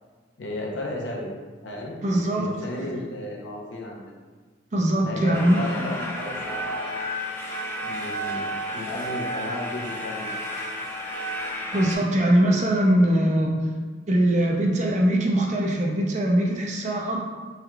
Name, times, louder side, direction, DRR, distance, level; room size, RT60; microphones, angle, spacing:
voice 1, 0.4-1.3 1.6-2.0 2.4-4.1 5.0-6.9 7.8-8.4 8.7-10.4, left 1 dB, 85° left, -2 dB, 0.8 m, -34 dB
voice 2, 2.0-2.5 4.7-5.6 11.7-13.5 14.1-17.2, right 1 dB, 40° right, 0 dB, 0.6 m, -21 dB
sound 1, 5.3-11.9, equal, 10° left, 0.5 m, -32 dB
4.3 x 3.5 x 2.3 m, 1.4 s
head